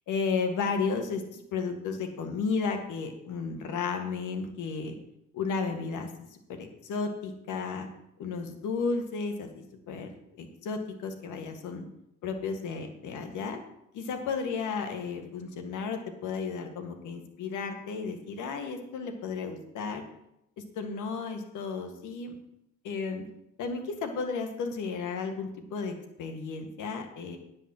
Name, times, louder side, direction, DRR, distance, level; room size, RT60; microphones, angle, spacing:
voice 1, 0.1-5.0 5.3-7.9 8.2-11.9 12.2-13.6 13.9-20.0 20.6-22.3 22.8-23.2 23.6-25.9 26.2-27.4, left 5 dB, 85° left, 6 dB, 1.9 m, -33 dB
10.0 x 5.4 x 7.7 m, 0.79 s
cardioid pair, 90°, 30 cm